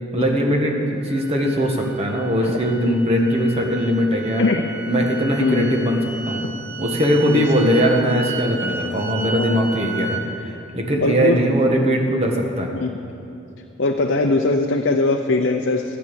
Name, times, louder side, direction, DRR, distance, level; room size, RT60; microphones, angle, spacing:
voice 1, 0.1-4.5 4.8-6.4 6.8-12.7, equal, 30° right, 1 dB, 1.6 m, -20 dB
sound 1, 1.1-10.2, right 4 dB, 15° right, 1.1 m, -33 dB
voice 2, 5.4-5.7 7.3-7.4 9.3-9.5 11.0-11.4 12.7-13.0 13.8-16.0, left 3 dB, 60° left, 2 dB, 0.7 m, -20 dB
13.5 x 9.6 x 7.1 m, 2.7 s
head